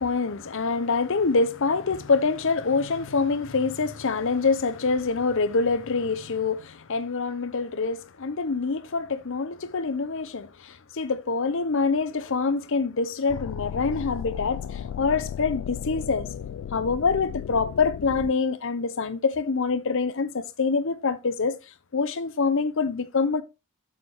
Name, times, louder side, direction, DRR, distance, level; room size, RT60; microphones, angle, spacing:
voice 1, 0.0-14.6 15.0-16.3 16.7-21.6 21.9-23.4, left 4 dB, 60° left, 0.8 m, -25 dB
sound 1, 13.3-18.3, left 8 dB, 80° left, 0.3 m, -35 dB
7.2 x 6.7 x 3.4 m
head